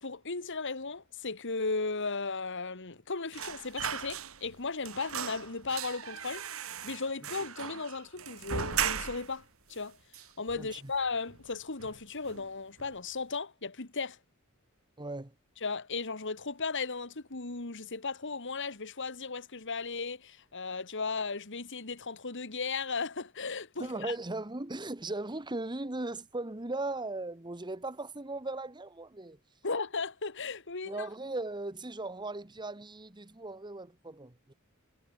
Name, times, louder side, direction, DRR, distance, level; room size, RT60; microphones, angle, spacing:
voice 1, 0.0-6.4 6.8-9.4 9.7-10.0 10.4-14.2 15.6-24.1 29.6-31.1, left 4 dB, 60° left, 2.2 m, -36 dB
sound 1, 3.3-4.6 4.8-9.4 9.7-9.8 10.1-11.0 11.3-11.5 11.8-12.5 12.8-13.0, right 8 dB, 70° right, 2.2 m, -37 dB
voice 2, 10.5-10.9 15.0-15.3 23.8-29.4 30.8-34.5, right 2 dB, 20° right, 1.3 m, -38 dB
head